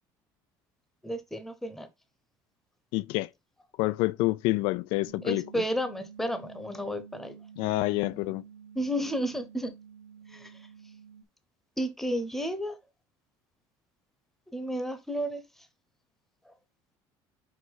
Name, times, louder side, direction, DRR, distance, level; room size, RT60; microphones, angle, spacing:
voice 1, 1.0-1.9 5.2-7.3 8.8-9.7 11.8-12.7 14.5-15.4, equal, 5° left, 0.9 m, -32 dB
voice 2, 2.9-3.3 3.8-5.6 7.6-8.4, left 19 dB, 80° left, 0.3 m, -28 dB
sound 1, 5.0-11.2, right 8 dB, 75° right, 1.4 m, -50 dB
5.0 x 4.8 x 4.1 m
cardioid pair, 155°, 9 cm